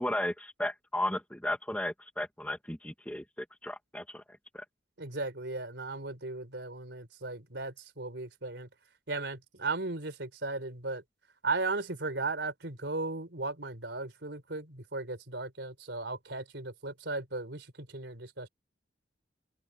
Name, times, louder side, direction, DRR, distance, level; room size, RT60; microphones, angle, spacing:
voice 1, 0.0-4.2 4.5-4.6, left 1 dB, 5° left, 1.5 m, -34 dB
voice 2, 5.0-8.7 9.1-11.0 11.4-18.5, right 3 dB, 70° right, 3.8 m, -36 dB
open air
head